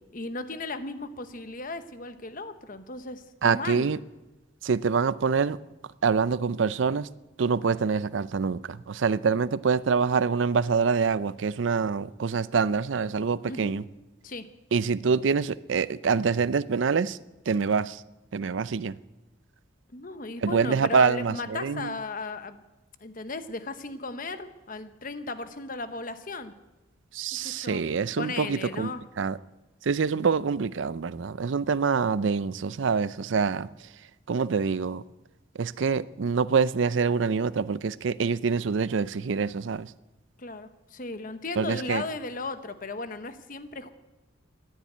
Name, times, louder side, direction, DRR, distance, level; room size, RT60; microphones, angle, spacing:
voice 1, 0.1-3.9 13.5-13.7 14.2-14.5 19.9-22.6 23.0-26.5 27.3-27.8 28.2-29.0 40.4-43.9, left 3 dB, 45° left, 1.0 m, -36 dB
voice 2, 3.4-4.0 4.6-5.6 6.0-7.1 7.4-13.8 14.7-17.2 17.5-18.0 18.3-19.0 20.4-21.9 27.1-28.9 29.2-29.4 29.8-33.7 34.3-35.0 35.6-39.9 41.6-42.0, right 5 dB, 75° right, 0.5 m, -25 dB
14.5 x 10.0 x 9.2 m
head